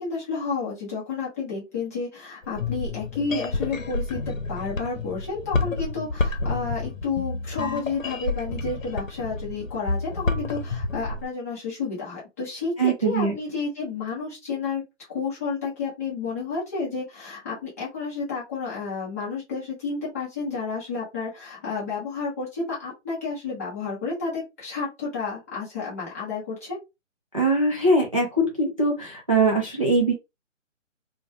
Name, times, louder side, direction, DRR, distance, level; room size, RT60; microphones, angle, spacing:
voice 1, 0.0-14.8 15.1-26.8, left 4 dB, 10° left, -7 dB, 0.6 m, -31 dB
sound 1, 2.4-11.3, left 3 dB, 90° left, 0.7 m, -29 dB
voice 2, 12.8-13.3 27.3-30.1, right 2 dB, 30° right, -2 dB, 0.4 m, -22 dB
3.0 x 2.2 x 2.5 m, 0.23 s
figure-of-eight pair, 145°, 39 cm